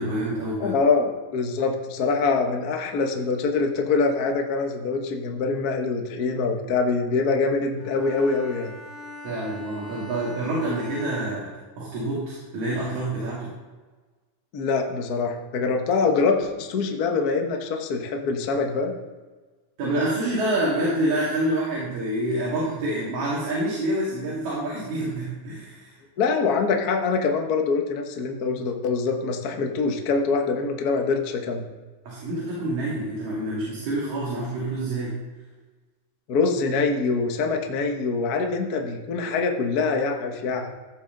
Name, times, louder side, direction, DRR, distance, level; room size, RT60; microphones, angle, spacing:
voice 1, 0.0-0.7 9.2-11.5 11.8-13.5 19.8-25.9 32.1-35.1, right 1 dB, 70° right, -7 dB, 3.9 m, -27 dB
voice 2, 0.6-8.7 14.5-18.9 26.2-31.6 36.3-40.7, left 4 dB, 70° left, 3 dB, 0.9 m, -24 dB
Bowed string instrument, 7.8-12.3, left 2 dB, ahead, 2.8 m, -42 dB
15.5 x 7.7 x 3.9 m, 1.3 s
omnidirectional pair, 3.5 m